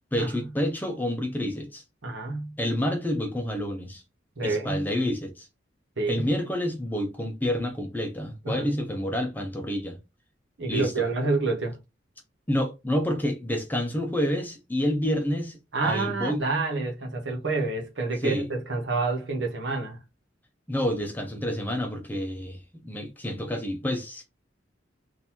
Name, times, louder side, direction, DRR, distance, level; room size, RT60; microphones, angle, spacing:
voice 1, 0.1-1.8 2.6-4.0 4.4-5.5 6.1-10.0 10.7-10.9 12.5-15.6 15.8-16.4 18.2-18.5 20.7-24.3, left 1 dB, 10° left, 0.7 m, -28 dB
voice 2, 2.0-2.5 4.4-4.9 6.0-6.3 8.4-8.8 10.6-11.7 15.7-20.0, right 3 dB, 75° right, 1.2 m, -28 dB
3.8 x 2.6 x 2.9 m
head